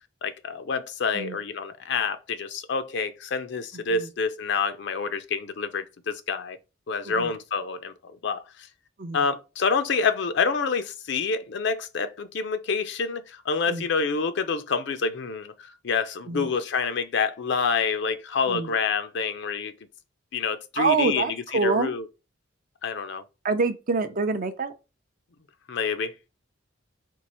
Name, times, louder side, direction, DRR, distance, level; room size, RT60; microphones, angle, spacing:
voice 1, 0.2-6.6 6.9-7.9 8.2-8.4 9.1-19.7 20.3-21.4 21.6-22.0 22.8-23.2 25.7-26.1, left 5 dB, 65° left, 0.5 m, -27 dB
voice 2, 3.7-4.1 7.0-7.4 9.0-9.3 13.7-13.9 16.3-16.5 18.5-18.7 20.8-21.9 23.4-24.7, right 4 dB, 45° right, 0.5 m, -26 dB
4.6 x 2.4 x 4.2 m
head